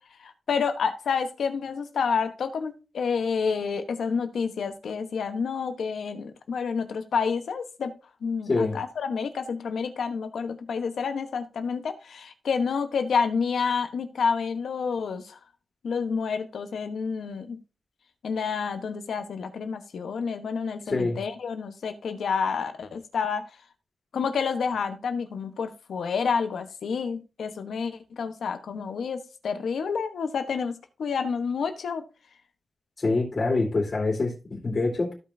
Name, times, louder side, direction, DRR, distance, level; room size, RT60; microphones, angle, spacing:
voice 1, 0.2-7.9 8.2-15.4 15.8-17.6 18.2-23.4 24.1-32.0, left 5 dB, 90° left, 8 dB, 1.1 m, -29 dB
voice 2, 20.9-21.2 33.0-35.1, left 3 dB, 40° left, -3 dB, 3.1 m, -25 dB
15.0 x 5.4 x 2.7 m, 0.30 s
wide cardioid pair, 105°, 0 cm